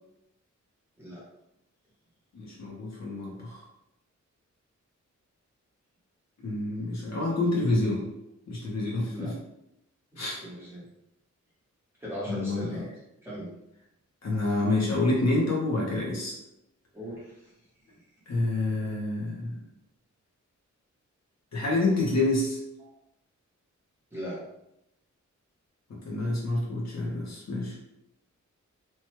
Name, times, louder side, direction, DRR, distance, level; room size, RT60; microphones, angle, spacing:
voice 1, 2.3-3.6 6.4-8.1 8.5-9.3 10.2-10.4 12.3-12.8 14.2-16.4 18.3-19.6 21.5-22.6 25.9-27.8, left 2 dB, 60° left, -3 dB, 0.8 m, -28 dB
voice 2, 9.0-9.3 10.1-10.9 12.0-12.9 13.2-13.6 16.9-17.4 24.1-24.4, equal, 10° right, -8 dB, 1.0 m, -39 dB
3.0 x 2.2 x 3.0 m, 0.84 s
wide cardioid pair, 175°, 30 cm